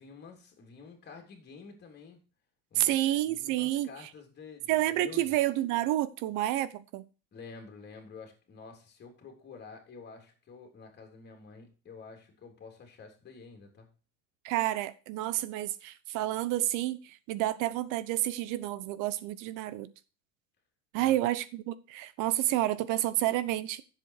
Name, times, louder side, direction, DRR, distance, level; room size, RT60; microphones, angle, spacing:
voice 1, 0.0-2.2 2.7-5.3 7.3-13.9 21.0-21.3, left 4 dB, 25° left, 3.4 m, -49 dB
voice 2, 2.7-3.9 4.7-7.0 14.4-19.9 20.9-23.8, right 14 dB, 50° right, 1.0 m, -29 dB
10.5 x 7.7 x 4.7 m
supercardioid pair, 145°, 39 cm